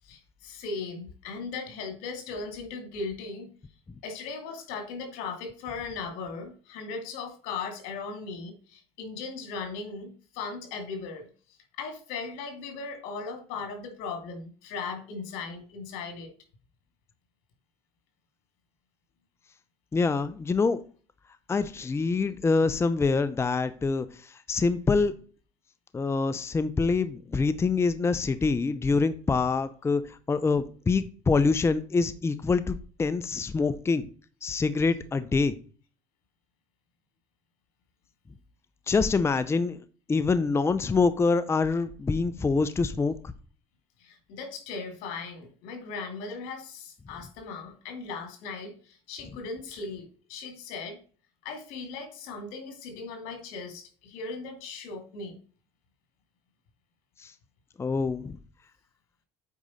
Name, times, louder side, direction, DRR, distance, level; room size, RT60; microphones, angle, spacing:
voice 1, 0.0-3.5 4.0-11.3 11.8-16.3 44.0-51.0 51.4-55.4, left 4 dB, 80° left, 2.5 m, -38 dB
voice 2, 19.9-20.9 21.5-25.1 25.9-34.1 34.4-35.6 38.9-39.8 40.1-43.3 57.2-57.3 57.8-58.4, left 4 dB, 20° left, 0.6 m, -25 dB
8.3 x 5.0 x 4.2 m
supercardioid pair, 100°, 14 cm